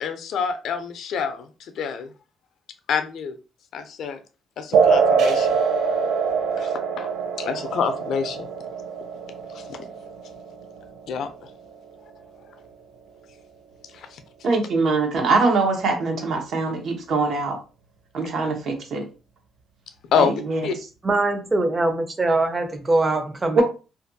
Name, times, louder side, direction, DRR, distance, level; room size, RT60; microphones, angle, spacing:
voice 1, 0.0-2.1 2.9-3.4 3.7-4.2 4.6-5.6 6.6-7.1 7.4-8.5 9.5-9.8 11.1-11.3 13.9-14.2 20.1-20.7, left 6 dB, 70° left, 0.4 m, -27 dB
sound 1, 4.7-11.8, right 5 dB, 80° right, 0.3 m, -24 dB
voice 2, 14.4-17.6 18.1-19.1 20.2-20.6 23.6-23.7, right 3 dB, 65° right, 0.8 m, -22 dB
voice 3, 21.0-23.6, right 2 dB, 25° right, 0.5 m, -22 dB
2.5 x 2.2 x 2.6 m
cardioid pair, 115°, 0 cm